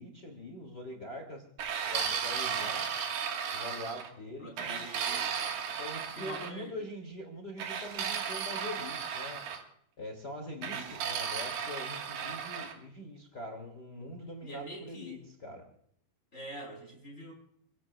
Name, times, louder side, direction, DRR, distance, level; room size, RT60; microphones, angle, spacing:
voice 1, 0.0-1.4 1.9-2.9 3.5-4.9 5.8-9.4 10.0-15.6, left 1 dB, 30° left, 3 dB, 2.4 m, -43 dB
sound 1, 1.6-4.1 4.6-6.5 7.6-9.6 10.6-12.7, right 7 dB, 60° right, 3.0 m, -35 dB
voice 2, 4.4-5.6 6.1-6.8 10.7-11.0 14.4-15.2 16.3-17.3, equal, 15° left, -2 dB, 7.8 m, -45 dB
29.5 x 17.0 x 2.4 m, 0.68 s
omnidirectional pair, 5.1 m